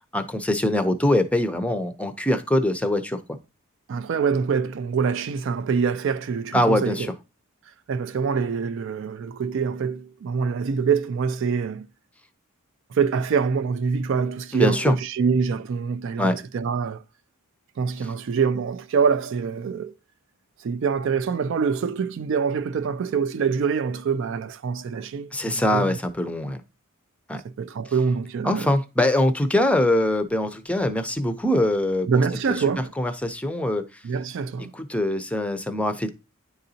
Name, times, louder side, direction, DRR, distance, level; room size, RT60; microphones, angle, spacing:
voice 1, 0.1-3.4 6.5-7.1 14.5-15.0 16.2-16.4 25.3-26.6 27.3-27.4 28.4-32.1 33.0-34.0 34.7-36.1, left 1 dB, 5° left, 0.5 m, -23 dB
voice 2, 3.9-7.1 7.9-11.8 12.9-17.0 17.8-19.9 20.6-26.0 27.4-28.7 32.1-32.9 34.0-34.7, right 6 dB, 60° right, 0.3 m, -25 dB
10.0 x 3.9 x 2.7 m
head